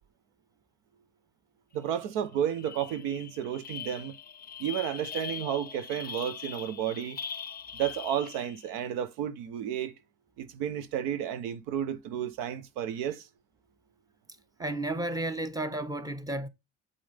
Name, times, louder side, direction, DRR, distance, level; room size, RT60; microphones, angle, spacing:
voice 1, 1.7-4.1 4.6-7.2 7.7-9.9 10.4-13.2, right 10 dB, 80° right, 0.9 m, -32 dB
sound 1, 1.9-2.0 2.3-8.7, left 7 dB, 30° left, 0.6 m, -41 dB
voice 2, 14.6-16.5, right 1 dB, 10° right, 1.4 m, -32 dB
8.6 x 5.1 x 3.4 m
hypercardioid pair, 65°, 33 cm